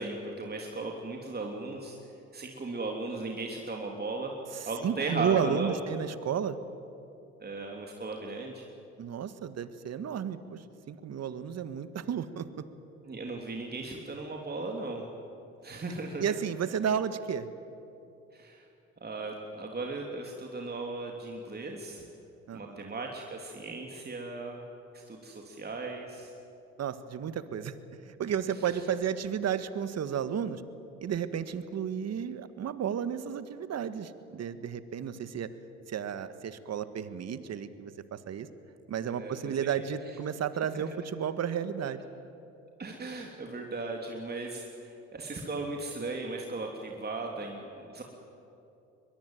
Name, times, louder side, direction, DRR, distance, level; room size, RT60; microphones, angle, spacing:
voice 1, 0.0-2.0 2.3-4.4 4.6-5.8 7.4-8.6 13.0-15.1 15.6-16.4 18.3-18.7 19.0-22.0 22.5-24.6 24.9-26.3 28.6-28.8 39.0-39.7 40.7-40.9 42.8-48.0, right 3 dB, 25° right, 1 dB, 3.2 m, -37 dB
voice 2, 4.8-6.6 9.0-12.6 16.2-17.5 22.5-22.8 26.8-27.7 28.0-30.6 31.0-35.5 35.9-38.5 38.9-42.0, right 8 dB, 45° right, 12 dB, 1.6 m, -32 dB
22.5 x 22.0 x 9.2 m, 2.8 s
hypercardioid pair, 60°, 35 cm